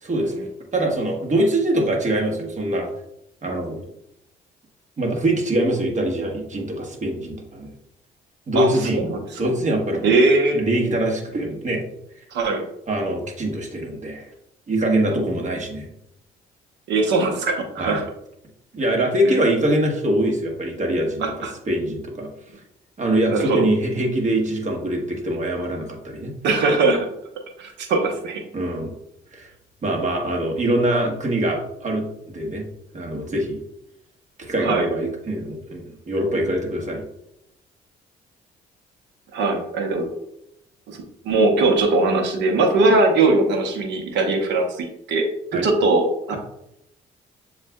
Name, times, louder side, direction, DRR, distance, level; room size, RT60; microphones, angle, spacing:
voice 1, 0.0-2.9 3.4-3.8 5.0-7.7 8.5-9.1 9.4-10.1 10.5-11.8 12.9-14.3 14.7-15.9 17.8-18.1 18.7-21.2 21.7-22.3 23.0-26.3 28.5-28.9 29.3-29.5 29.8-32.7 32.9-33.6 34.4-37.0 45.5-45.7, right 1 dB, 40° right, 1 dB, 1.3 m, -23 dB
voice 2, 8.5-9.2 10.0-10.6 12.3-12.6 15.1-15.2 16.9-18.0 19.2-19.4 21.2-21.5 23.3-23.6 26.4-27.1 27.6-28.4 34.6-34.9 39.3-40.1 40.9-46.4, right 3 dB, 75° right, 4 dB, 0.9 m, -20 dB
7.2 x 2.5 x 2.2 m, 0.79 s
supercardioid pair, 65°, 18 cm